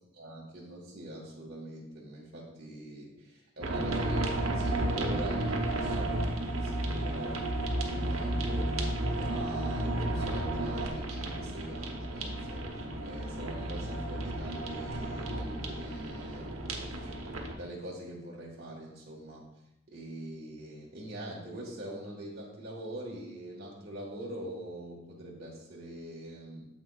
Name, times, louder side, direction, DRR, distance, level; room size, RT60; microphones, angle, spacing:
voice 1, 0.1-7.4 7.8-8.7 9.2-12.6 13.0-17.2 17.5-19.4 19.9-26.7, right 1 dB, 50° right, -4 dB, 1.5 m, -43 dB
sound 1, 3.6-17.5, right 1 dB, 80° right, 1.1 m, -32 dB
8.9 x 7.4 x 2.4 m, 0.87 s
head